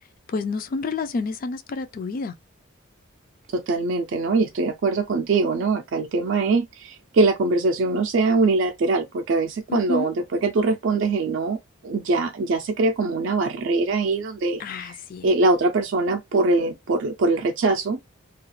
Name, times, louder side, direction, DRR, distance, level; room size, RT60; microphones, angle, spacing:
voice 1, 0.3-2.4 9.7-10.1 14.6-15.3, left 3 dB, 40° left, 0.3 m, -29 dB
voice 2, 3.5-11.6 11.8-15.0 15.2-18.0, right 3 dB, 60° right, 0.4 m, -22 dB
2.3 x 2.2 x 3.0 m
head